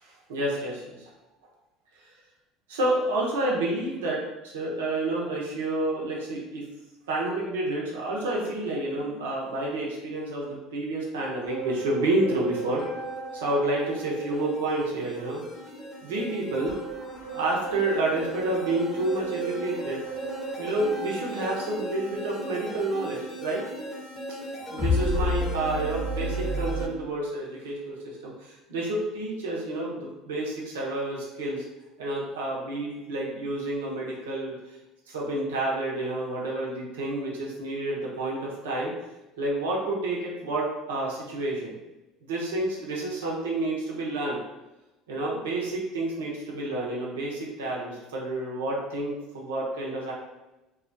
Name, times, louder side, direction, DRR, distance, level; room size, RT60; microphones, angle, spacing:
voice 1, 0.0-1.1 2.0-2.1 2.7-6.7 7.1-12.9 13.3-15.4 16.0-16.7 17.3-20.0 20.6-23.6 24.7-31.6 32.0-34.5 35.1-38.9 39.4-41.7 42.2-44.4 45.1-50.1, right 2 dB, 80° right, -3 dB, 0.7 m, -29 dB
sound 1, 11.5-26.9, equal, 35° left, 0.8 m, -33 dB
2.3 x 2.2 x 2.5 m, 1.0 s
hypercardioid pair, 70°, 0 cm